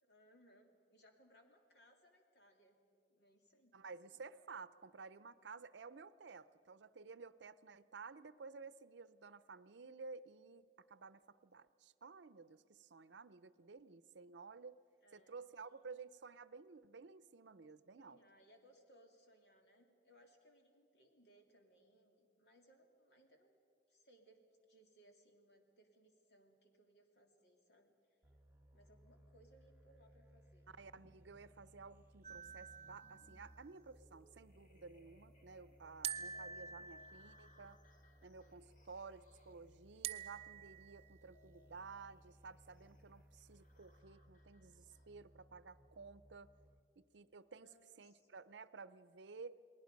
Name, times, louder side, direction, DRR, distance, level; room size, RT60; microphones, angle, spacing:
voice 1, 0.0-2.8 3.1-3.8 15.0-15.4 18.0-23.6 23.9-28.2 28.7-30.7 36.3-36.9 47.6-48.3, right 1 dB, 65° left, 3 dB, 2.7 m, -68 dB
voice 2, 3.7-14.8 15.1-18.2 30.8-37.8 38.2-46.5 47.0-49.6, right 4 dB, 80° right, 15 dB, 0.6 m, -54 dB
sound 1, 28.2-46.8, equal, 15° right, 1.4 m, -65 dB
sound 2, 30.8-45.4, equal, 45° left, 1.6 m, -70 dB
sound 3, 32.2-33.7 36.0-37.7 40.0-41.1, right 8 dB, 35° right, 0.6 m, -47 dB
29.5 x 20.0 x 5.3 m, 2.4 s
head